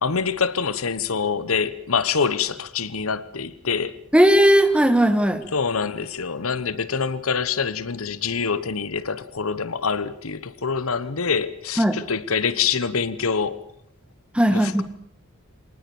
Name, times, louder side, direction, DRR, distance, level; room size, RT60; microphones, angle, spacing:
voice 1, 0.0-3.9 5.5-13.6 14.5-14.8, left 5 dB, 80° left, 1.1 m, -25 dB
voice 2, 4.1-5.4 11.8-12.0 14.3-14.8, equal, 5° right, 1.6 m, -17 dB
25.0 x 19.0 x 7.0 m
head